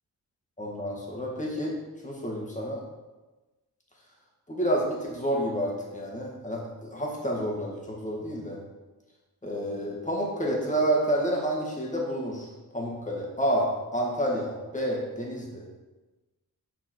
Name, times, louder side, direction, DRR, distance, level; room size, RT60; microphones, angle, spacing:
voice 1, 0.6-1.8 2.0-2.8 4.5-8.6 9.4-15.9, right 1 dB, 20° left, -2 dB, 1.9 m, -29 dB
5.6 x 5.2 x 4.6 m, 1.2 s
cardioid pair, 65°, 37 cm